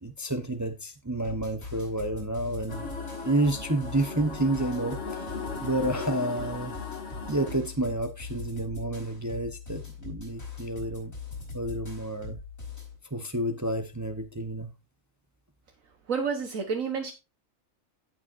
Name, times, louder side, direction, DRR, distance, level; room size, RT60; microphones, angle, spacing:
voice 1, 0.0-2.9 3.2-6.8 7.3-11.1 11.5-12.4 13.1-14.7, right 1 dB, 15° right, 1.0 m, -30 dB
sound 1, 1.2-13.0, left 5 dB, 75° left, 5.7 m, -41 dB
sound 2, 2.7-7.5, left 4 dB, 60° left, 2.3 m, -38 dB
voice 2, 16.1-17.1, right 5 dB, 75° right, 1.6 m, -29 dB
16.5 x 6.0 x 2.6 m
omnidirectional pair, 1.4 m